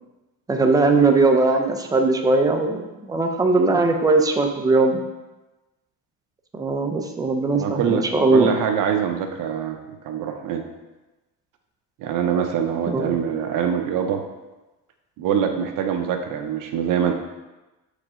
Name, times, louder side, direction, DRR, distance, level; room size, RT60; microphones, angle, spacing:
voice 1, 0.5-5.0 6.5-8.5 12.9-13.2, right 3 dB, 10° right, 3 dB, 0.5 m, -19 dB
voice 2, 7.6-9.8 10.0-10.6 12.0-14.2 15.2-17.2, right 8 dB, 55° right, 4 dB, 0.7 m, -24 dB
6.6 x 5.0 x 3.6 m, 1.1 s
cardioid pair, 150°, 38 cm